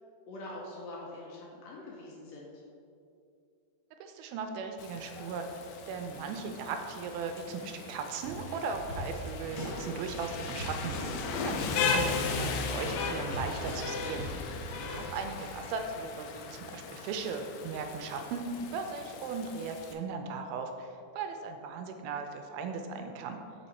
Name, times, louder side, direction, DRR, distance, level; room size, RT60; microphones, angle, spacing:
voice 1, 0.3-2.6 14.6-14.9, left 2 dB, 75° left, -4 dB, 2.2 m, -44 dB
voice 2, 4.0-5.6 5.9-14.3 14.9-23.4, right 4 dB, 85° right, 5 dB, 2.3 m, -37 dB
Rain, 4.8-19.9, left 5 dB, 90° left, 1.9 m, -37 dB
sound 1, 8.2-15.6, right 3 dB, 55° right, 2.0 m, -46 dB
sound 2, 8.9-9.0 9.6-9.7 10.6-11.0 11.6-11.7 12.3-12.4 13.0-13.1 13.3-13.8 14.2-14.3, left 1 dB, 50° left, 1.4 m, -39 dB
5.6 x 5.4 x 4.1 m, 2.5 s
omnidirectional pair, 4.4 m